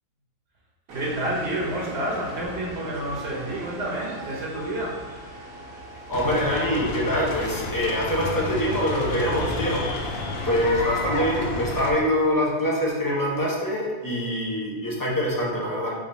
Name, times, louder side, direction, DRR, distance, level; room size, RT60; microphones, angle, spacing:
voice 1, 0.9-5.0, right 1 dB, 45° right, -4 dB, 1.1 m, -29 dB
sound 1, 0.9-10.6, right 2 dB, 70° right, 1.3 m, -40 dB
sound 2, 6.1-11.9, left 3 dB, 65° left, 0.6 m, -31 dB
voice 2, 6.1-15.9, equal, 20° left, -4 dB, 0.5 m, -25 dB
3.7 x 3.4 x 4.2 m, 1.5 s
omnidirectional pair, 1.6 m